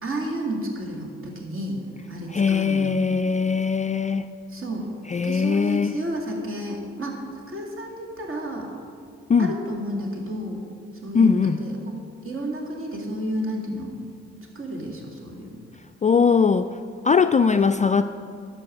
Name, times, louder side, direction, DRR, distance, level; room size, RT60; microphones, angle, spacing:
voice 1, 0.0-1.8 2.1-2.9 4.5-4.9 5.2-7.2 7.5-8.7 9.4-10.6 11.0-14.0 14.6-15.6, right 1 dB, 45° right, 0 dB, 2.3 m, -31 dB
voice 2, 2.3-4.3 5.1-6.0 9.3-9.5 11.1-11.6 16.0-16.7 17.0-18.0, left 5 dB, 25° left, 9 dB, 0.3 m, -20 dB
12.0 x 4.8 x 6.4 m, 2.3 s
hypercardioid pair, 40°, 30 cm